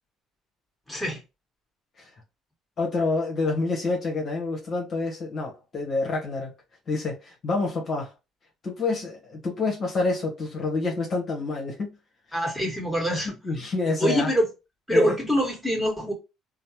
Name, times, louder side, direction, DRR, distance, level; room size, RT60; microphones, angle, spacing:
voice 1, 0.9-1.2 12.3-13.4 14.0-14.5 14.9-16.1, equal, ahead, 1.5 m, -24 dB
voice 2, 2.8-6.5 6.9-8.1 8.6-11.9 13.2-14.3 14.9-15.1, left 3 dB, 45° left, 1.0 m, -27 dB
3.1 x 2.0 x 2.8 m
supercardioid pair, 70°, 0 cm